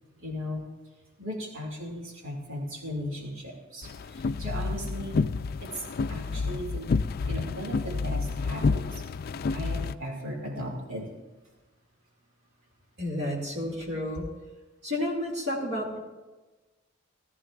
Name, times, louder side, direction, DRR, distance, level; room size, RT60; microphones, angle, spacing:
voice 1, 0.2-0.7 1.2-5.2 5.6-7.0 7.3-9.0 9.5-11.1, equal, 85° right, 0 dB, 2.3 m, -37 dB
sound 1, 3.8-9.9, left 4 dB, 45° left, 0.3 m, -29 dB
voice 2, 13.0-14.3 14.8-16.0, left 1 dB, 55° right, -3 dB, 2.2 m, -31 dB
18.5 x 13.5 x 2.4 m, 1.2 s
head